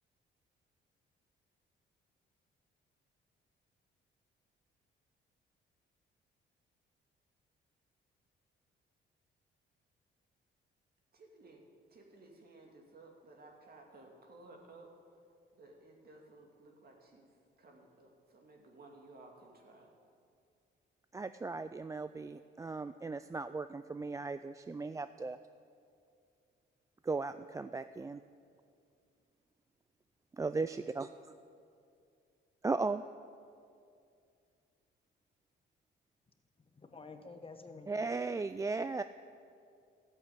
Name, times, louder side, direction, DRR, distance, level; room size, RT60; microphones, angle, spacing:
voice 1, 11.1-11.6 11.9-14.9 15.5-17.3 17.6-19.9, right 2 dB, 50° right, 1 dB, 2.5 m, -57 dB
voice 2, 21.1-25.4 27.0-28.2 30.4-31.3 32.6-33.0 37.9-39.0, right 3 dB, 15° right, 12 dB, 0.3 m, -37 dB
voice 3, 36.6-37.9, left 3 dB, 30° left, 7 dB, 1.1 m, -50 dB
13.5 x 8.4 x 8.4 m, 2.4 s
cardioid pair, 90°, 20 cm